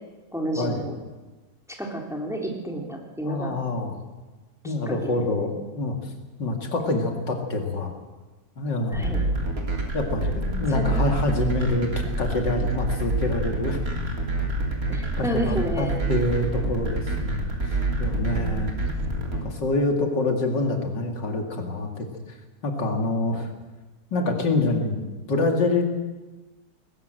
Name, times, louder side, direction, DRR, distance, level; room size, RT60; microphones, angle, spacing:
voice 1, 0.3-0.9 1.7-3.6 4.6-5.5 8.9-9.2 10.7-11.0 14.9-16.0 18.3-18.8, right 1 dB, ahead, 1 dB, 3.3 m, -31 dB
voice 2, 3.2-3.9 4.6-5.5 5.8-6.1 6.4-7.9 8.6-9.3 9.9-11.9 12.2-13.8 15.2-18.7 19.3-22.1 22.6-23.5 24.1-25.0 25.3-25.8, left 2 dB, 80° left, 3 dB, 3.1 m, -26 dB
sound 1, 8.9-19.4, right 2 dB, 50° right, 3.9 m, -27 dB
20.5 x 18.5 x 7.8 m, 1.2 s
omnidirectional pair, 1.9 m